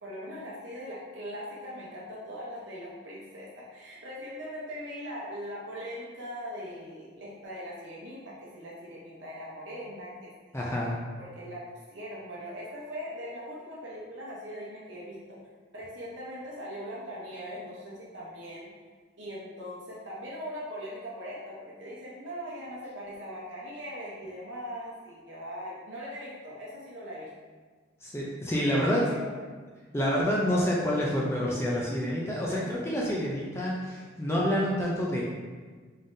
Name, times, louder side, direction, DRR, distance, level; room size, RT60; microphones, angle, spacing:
voice 1, 0.0-10.3 11.2-15.4 15.7-18.7 19.2-27.3 28.7-29.4 32.5-32.7, equal, 65° right, -6 dB, 0.8 m, -40 dB
voice 2, 10.5-10.9 28.0-29.0 29.9-35.2, equal, 15° left, -4 dB, 0.4 m, -28 dB
3.7 x 3.5 x 2.6 m, 1.5 s
head